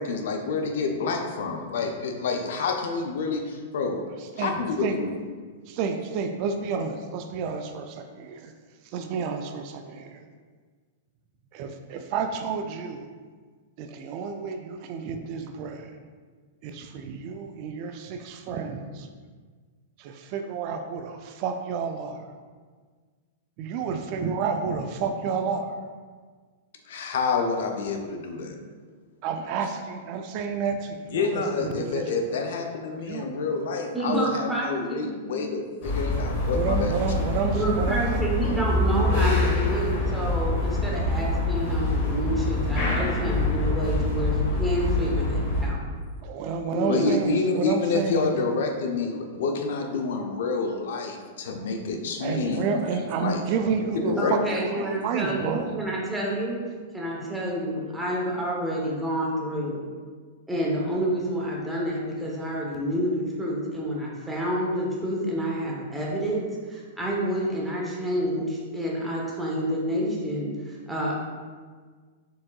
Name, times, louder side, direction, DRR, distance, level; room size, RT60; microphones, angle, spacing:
voice 1, 0.0-4.0 4.4-5.1 26.9-28.6 31.1-37.3 46.9-52.9 53.2-53.4 53.9-54.6, left 4 dB, 70° left, 4 dB, 0.5 m, -28 dB
voice 2, 5.7-8.5 8.8-10.3 11.5-13.1 13.8-15.9 16.6-19.1 20.0-22.3 23.6-25.8 29.2-32.2 33.0-33.3 36.5-38.2 46.2-48.5 52.2-55.8, right 5 dB, 45° right, 6 dB, 0.3 m, -30 dB
voice 3, 33.9-35.5 37.5-45.8 46.7-47.1 54.2-56.6 56.9-59.8 60.5-71.1, right 1 dB, 5° right, -4 dB, 0.9 m, -29 dB
sound 1, 35.8-45.7, left 2 dB, 45° left, 1.2 m, -25 dB
4.6 x 3.6 x 2.3 m, 1.6 s
hypercardioid pair, 140°, 0 cm